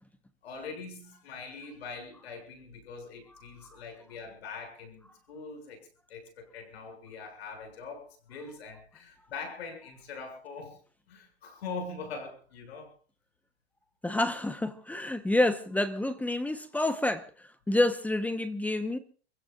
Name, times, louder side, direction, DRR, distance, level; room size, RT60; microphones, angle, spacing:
voice 1, 0.4-5.8 6.1-10.8 11.1-12.9, left 4 dB, 75° left, 6.9 m, -42 dB
voice 2, 14.0-17.2 17.7-19.0, left 1 dB, 5° left, 1.0 m, -28 dB
29.0 x 16.0 x 2.5 m
hypercardioid pair, 130°, 32 cm